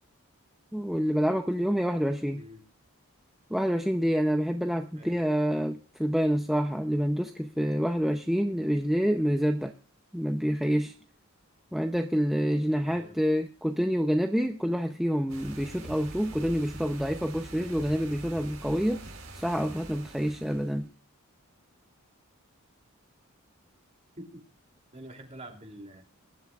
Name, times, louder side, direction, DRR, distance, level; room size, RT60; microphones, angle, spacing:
voice 1, 0.7-2.4 3.5-9.7 10.1-10.9 11.7-19.0 19.3-20.9, equal, ahead, 4 dB, 0.6 m, -27 dB
voice 2, 12.8-13.2 24.2-24.4 24.9-26.0, right 1 dB, 30° right, 2 dB, 2.9 m, -46 dB
sound 1, 15.3-20.9, right 2 dB, 70° right, 5.0 m, -44 dB
21.5 x 11.5 x 2.4 m, 0.39 s
head